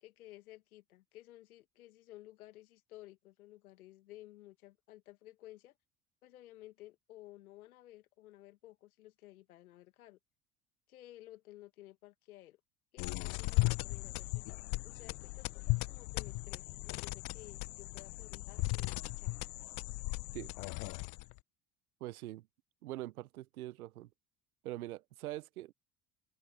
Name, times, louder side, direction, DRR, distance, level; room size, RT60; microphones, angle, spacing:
voice 1, 0.0-5.7 6.2-10.2 10.9-12.6 12.9-19.3, left 15 dB, 85° left, 2.0 m, -55 dB
sound 1, 13.0-21.4, left 28 dB, 65° left, 0.8 m, -37 dB
voice 2, 22.0-22.5 22.8-24.1 24.6-25.7, right 16 dB, 85° right, 1.0 m, -43 dB
open air
hypercardioid pair, 65°, 42 cm